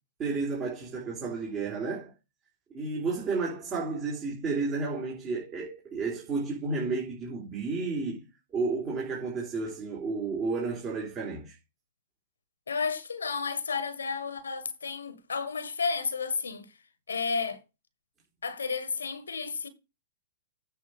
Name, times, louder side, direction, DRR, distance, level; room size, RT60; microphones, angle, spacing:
voice 1, 0.2-2.1 2.7-8.2 8.5-11.5, right 4 dB, 25° right, 3.6 m, -32 dB
voice 2, 12.7-16.7 17.1-17.6 18.4-19.7, left 5 dB, 90° left, 1.5 m, -32 dB
9.1 x 4.9 x 6.0 m
hypercardioid pair, 125°, 0 cm